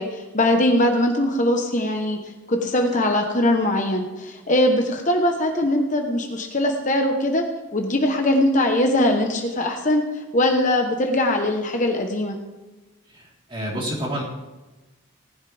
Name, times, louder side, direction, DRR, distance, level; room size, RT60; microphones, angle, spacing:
voice 1, 0.0-7.4 7.7-10.1 10.3-12.4, left 1 dB, 35° left, 3 dB, 1.1 m, -21 dB
voice 2, 13.1-14.2, equal, 25° right, -5 dB, 4.0 m, -29 dB
18.5 x 11.5 x 3.5 m, 1.1 s
head